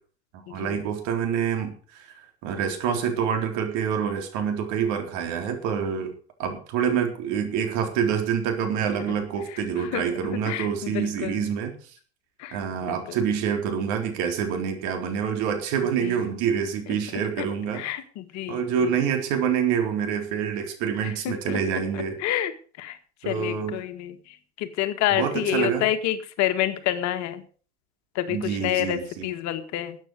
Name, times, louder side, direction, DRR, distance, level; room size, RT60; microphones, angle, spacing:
voice 1, 0.5-2.1 2.4-6.1 6.4-11.7 12.5-17.8 18.5-22.1 23.2-23.8 25.1-25.9 28.3-29.3, right 7 dB, 55° right, 5 dB, 3.9 m, -26 dB
voice 2, 9.5-10.0 10.5-11.4 12.4-12.6 12.9-13.2 16.0-16.2 17.4-17.5 17.7-19.0 21.0-21.6 21.9-22.5 22.8-23.0 23.3-24.2 24.6-27.4 28.2-30.0, left 13 dB, 50° left, 9 dB, 1.9 m, -28 dB
13.5 x 8.9 x 6.6 m, 0.41 s
hypercardioid pair, 85°, 35 cm